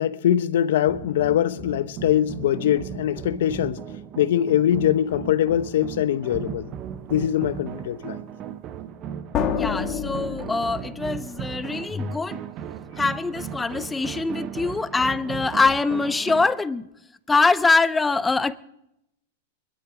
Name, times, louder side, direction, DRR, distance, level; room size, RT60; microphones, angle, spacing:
voice 1, 0.0-3.8 4.2-6.7 7.1-8.2, left 11 dB, 70° left, 0.9 m, -22 dB
sound 1, 0.8-16.5, right 9 dB, 35° right, 1.0 m, -37 dB
sound 2, 6.7-7.0 9.3-12.0, left 7 dB, 35° left, 1.9 m, -29 dB
voice 2, 9.5-12.4 13.0-16.9 17.3-18.6, left 3 dB, 10° left, 0.6 m, -23 dB
22.0 x 12.0 x 5.0 m
hypercardioid pair, 125°, 0 cm